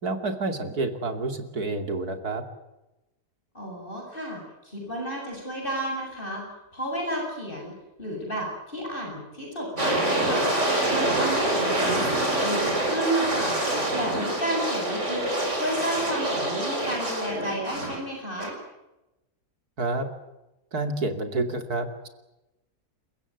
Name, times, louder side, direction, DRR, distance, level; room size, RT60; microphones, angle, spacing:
voice 1, 0.0-2.4 19.8-20.1 20.7-22.1, right 2 dB, 70° right, 7 dB, 3.2 m, -29 dB
voice 2, 3.5-6.4 6.7-7.7 8.0-10.5 10.9-13.6 13.9-15.3 15.5-18.6, right 1 dB, 30° left, 0 dB, 8.3 m, -31 dB
sound 1, 9.8-18.0 18.4-18.5, right 1 dB, 45° right, 5.8 m, -26 dB
29.5 x 15.5 x 9.4 m, 0.96 s
omnidirectional pair, 1.7 m